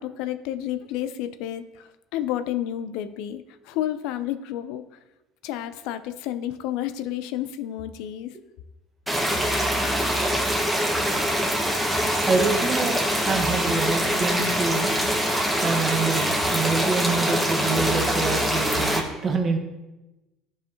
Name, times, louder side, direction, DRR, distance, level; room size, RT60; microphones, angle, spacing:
voice 1, 0.0-4.8 5.4-8.4, left 12 dB, 70° left, 11 dB, 0.5 m, -31 dB
sound 1, 9.1-19.0, equal, 5° right, 1.5 m, -24 dB
voice 2, 12.3-14.9 15.6-19.6, right 4 dB, 40° right, 5 dB, 1.2 m, -26 dB
11.5 x 4.8 x 2.9 m, 1.0 s
hypercardioid pair, 70°, 0 cm